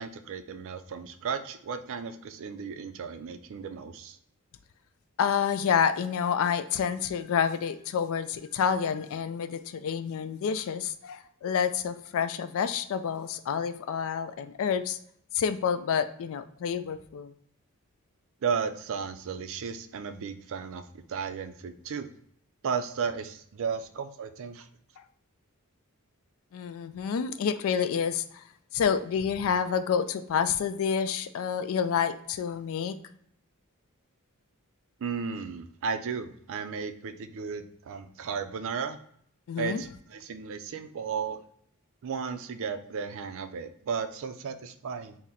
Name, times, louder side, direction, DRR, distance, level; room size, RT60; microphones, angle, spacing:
voice 1, 0.0-4.2 18.4-20.8 21.1-22.1 22.6-24.7 35.0-39.0 39.6-41.4 42.0-45.2, right 6 dB, 60° right, 9 dB, 0.4 m, -34 dB
voice 2, 5.2-15.0 15.3-17.3 26.5-28.4 28.7-32.9 39.5-39.8, left 7 dB, 65° left, 11 dB, 0.3 m, -28 dB
3.7 x 2.0 x 4.1 m, 0.65 s
head